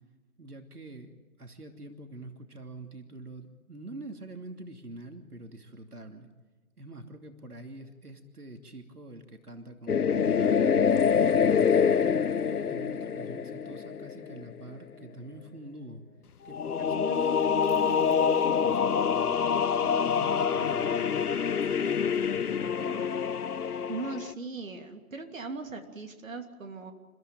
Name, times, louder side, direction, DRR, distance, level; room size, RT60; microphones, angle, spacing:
voice 1, 0.4-6.3 6.8-12.0 12.4-16.0 16.4-21.3 21.6-23.1, right 2 dB, 90° right, 5 dB, 2.9 m, -45 dB
sound 1, 9.9-14.4 16.5-24.3, left 7 dB, 80° left, 0.8 m, -26 dB
voice 2, 23.9-26.9, right 4 dB, 60° right, 4 dB, 3.1 m, -38 dB
30.0 x 15.0 x 9.1 m, 1.3 s
figure-of-eight pair, 160°, 44 cm